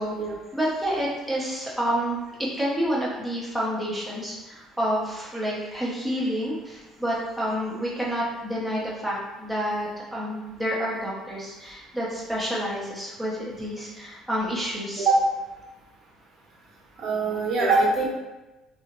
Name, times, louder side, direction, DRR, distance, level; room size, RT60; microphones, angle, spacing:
voice 1, 0.5-15.1, equal, 5° right, -6 dB, 0.7 m, -29 dB
voice 2, 17.0-18.1, right 3 dB, 45° right, -3 dB, 0.8 m, -22 dB
3.6 x 2.0 x 2.9 m, 1.1 s
cardioid pair, 150°, 0 cm